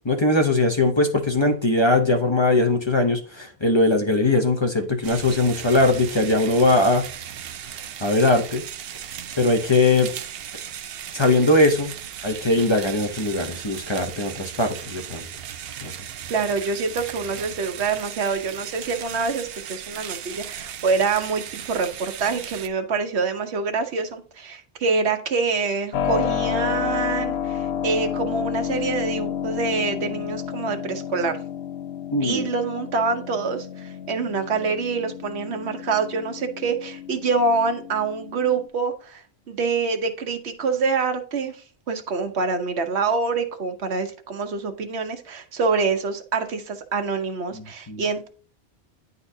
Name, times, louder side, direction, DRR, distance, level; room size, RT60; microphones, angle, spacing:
voice 1, 0.0-7.1 8.0-8.6 9.4-10.1 11.1-12.0 12.2-15.3 15.8-16.0 32.1-32.5 47.5-48.0, left 2 dB, 30° left, 0.6 m, -20 dB
sound 1, 5.0-22.7, right 9 dB, 70° right, 0.7 m, -37 dB
voice 2, 16.3-31.4 32.2-48.3, right 4 dB, 85° right, 1.1 m, -26 dB
Keyboard (musical), 25.9-38.7, left 8 dB, 85° left, 0.9 m, -30 dB
9.9 x 4.0 x 2.7 m
omnidirectional pair, 1.1 m